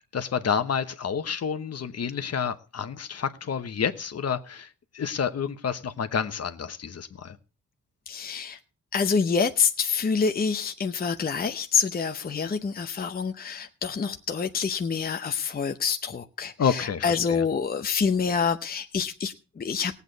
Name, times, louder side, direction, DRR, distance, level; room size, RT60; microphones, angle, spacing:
voice 1, 0.1-7.4 16.6-17.4, left 7 dB, 50° left, 9 dB, 1.1 m, -29 dB
voice 2, 8.1-8.6 8.9-19.9, left 6 dB, 30° left, 6 dB, 0.7 m, -27 dB
18.5 x 8.4 x 4.0 m, 0.34 s
cardioid pair, 95°, 31 cm